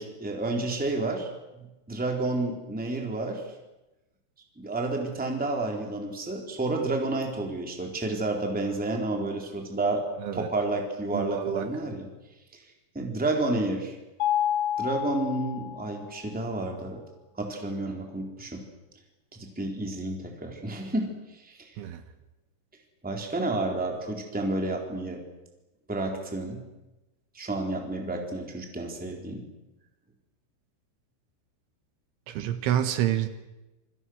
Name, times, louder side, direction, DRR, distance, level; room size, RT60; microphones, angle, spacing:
voice 1, 0.0-3.4 4.6-10.0 10.3-12.1 12.9-13.9 14.8-17.0 17.4-18.6 19.3-21.7 23.0-25.2 25.9-26.6 27.3-29.5, right 2 dB, ahead, 2 dB, 2.7 m, -30 dB
voice 2, 11.1-11.7 21.8-22.0 32.3-33.3, right 11 dB, 75° right, 9 dB, 3.6 m, -28 dB
Mallet percussion, 14.2-16.2, left 10 dB, 70° left, 3.3 m, -29 dB
27.0 x 24.5 x 6.4 m, 1.0 s
omnidirectional pair, 5.8 m